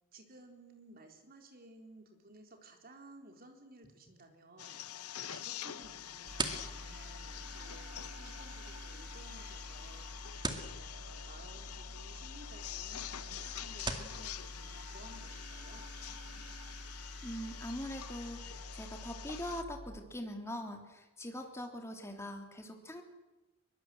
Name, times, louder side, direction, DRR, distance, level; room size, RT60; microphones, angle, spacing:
voice 1, 0.1-4.8 5.3-10.2 10.6-15.9, right 2 dB, 40° right, 4 dB, 4.0 m, -57 dB
sound 1, 4.6-19.6, left 10 dB, 80° left, 0.9 m, -46 dB
sound 2, 5.8-14.2, right 3 dB, 20° right, 2.2 m, -45 dB
sound 3, 6.3-20.0, equal, 90° right, 2.3 m, -48 dB
voice 2, 17.2-23.0, left 1 dB, 10° left, 4 dB, 3.1 m, -42 dB
23.5 x 22.0 x 7.9 m, 1.1 s
head